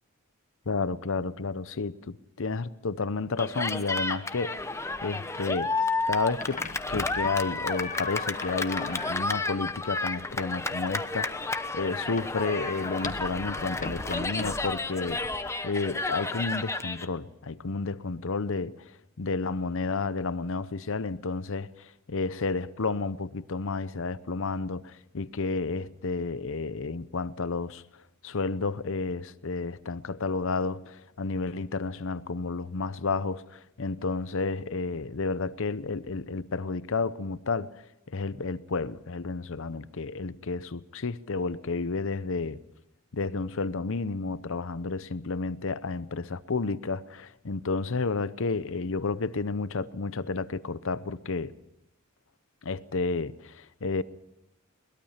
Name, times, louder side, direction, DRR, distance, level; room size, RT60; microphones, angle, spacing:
voice 1, 0.7-4.6 5.0-5.7 6.0-6.6 6.9-11.3 11.7-15.2 15.6-18.7 19.2-21.7 22.1-27.8 28.2-37.7 38.1-42.6 43.1-51.5 52.6-54.0, left 4 dB, 70° left, 0.8 m, -31 dB
Cheering, 3.4-17.0, left 3 dB, 15° left, 0.9 m, -32 dB
sound 1, 5.9-15.5, left 4 dB, 40° left, 1.6 m, -40 dB
22.0 x 21.0 x 5.8 m
head